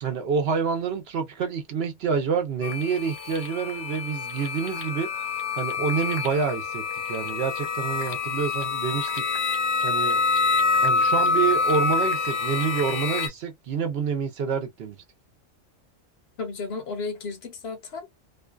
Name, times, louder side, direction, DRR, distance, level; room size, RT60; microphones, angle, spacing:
voice 1, 0.0-5.3 5.6-10.2 10.8-15.0, right 6 dB, 60° right, 0.8 m, -28 dB
sound 1, 2.6-13.3, left 4 dB, 85° left, 1.0 m, -26 dB
voice 2, 16.4-18.1, left 4 dB, 60° left, 0.8 m, -33 dB
2.5 x 2.2 x 2.2 m
omnidirectional pair, 1.3 m